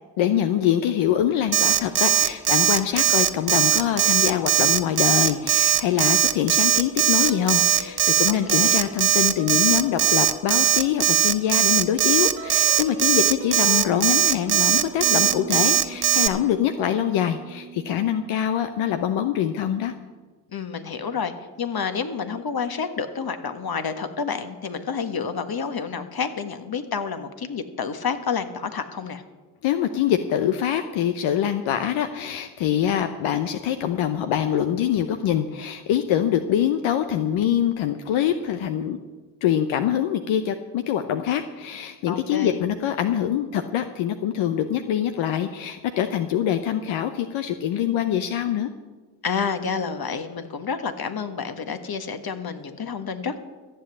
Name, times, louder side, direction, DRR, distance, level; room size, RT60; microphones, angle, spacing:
voice 1, 0.2-19.9 29.6-39.0 39.4-48.7, left 10 dB, 80° left, 8 dB, 0.8 m, -24 dB
Alarm, 1.5-16.3, right 10 dB, 55° right, 1.0 m, -19 dB
sound 1, 7.2-7.9 8.3-18.6, right 6 dB, 85° right, 1.9 m, -40 dB
voice 2, 8.3-8.7 20.5-29.2 42.1-42.6 49.2-53.4, left 6 dB, 50° left, 9 dB, 1.6 m, -29 dB
14.0 x 7.8 x 8.3 m, 1.3 s
hypercardioid pair, 40°, 47 cm